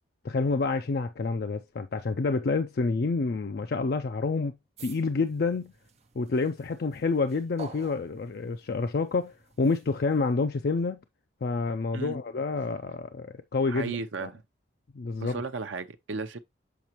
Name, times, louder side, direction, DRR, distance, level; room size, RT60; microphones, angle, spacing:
voice 1, 0.2-4.5 4.8-5.7 6.2-11.0 11.4-14.3 14.9-15.4, left 4 dB, 55° left, 0.4 m, -28 dB
sound 1, 4.8-10.3, right 4 dB, 35° right, 0.7 m, -50 dB
voice 2, 13.7-14.4 15.2-16.4, right 4 dB, 75° right, 0.6 m, -34 dB
7.0 x 5.0 x 3.0 m
head